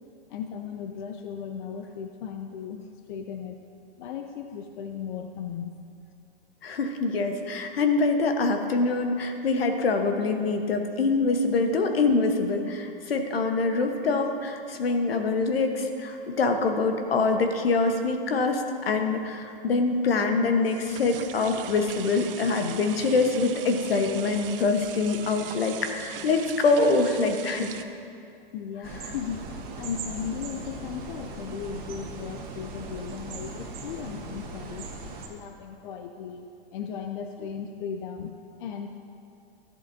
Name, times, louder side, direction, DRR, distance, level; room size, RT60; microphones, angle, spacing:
voice 1, 0.3-3.6 4.0-5.7 28.5-29.4 29.8-34.9 35.3-38.9, left 7 dB, 55° left, 5 dB, 0.7 m, -36 dB
voice 2, 6.6-27.8, left 3 dB, 80° left, 5 dB, 1.2 m, -25 dB
sound 1, 19.8-27.8, right 9 dB, 70° right, 0.7 m, -41 dB
sound 2, 28.8-35.3, right 3 dB, 30° right, 1.5 m, -39 dB
13.5 x 11.5 x 2.7 m, 2.5 s
hypercardioid pair, 120°, 29 cm